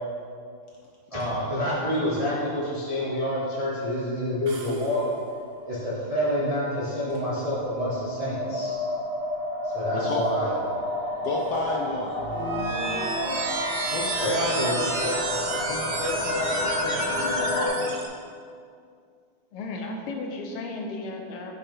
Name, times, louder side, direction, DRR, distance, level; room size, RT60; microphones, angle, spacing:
voice 1, 1.1-5.0 5.6-8.7 9.6-10.5 14.2-14.8, equal, 35° right, -8 dB, 0.5 m, -27 dB
sound 1, 4.5-5.5, right 4 dB, 85° right, 1.8 m, -46 dB
sound 2, 4.7-17.7, left 1 dB, 50° left, 2.0 m, -31 dB
voice 2, 9.9-10.3 11.2-12.2 13.9-15.2 15.5-18.0, left 2 dB, 75° left, -2 dB, 0.9 m, -32 dB
sound 3, 12.2-18.1, right 3 dB, 70° right, 1.3 m, -31 dB
voice 3, 14.9-15.4 19.5-21.6, left 2 dB, 90° left, 2 dB, 1.7 m, -35 dB
6.6 x 3.6 x 5.1 m, 2.2 s
omnidirectional pair, 2.4 m